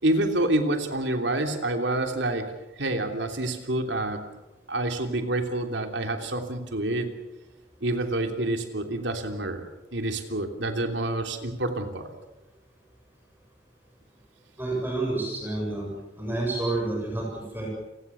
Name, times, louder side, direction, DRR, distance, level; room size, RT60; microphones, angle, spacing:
voice 1, 0.0-2.5 2.8-4.2 4.7-7.1 7.8-9.6 9.9-12.1, right 1 dB, 70° right, 6 dB, 3.1 m, -27 dB
voice 2, 14.6-15.9 16.2-17.7, right 2 dB, 10° right, -2 dB, 7.4 m, -29 dB
29.5 x 19.5 x 7.1 m, 1.0 s
head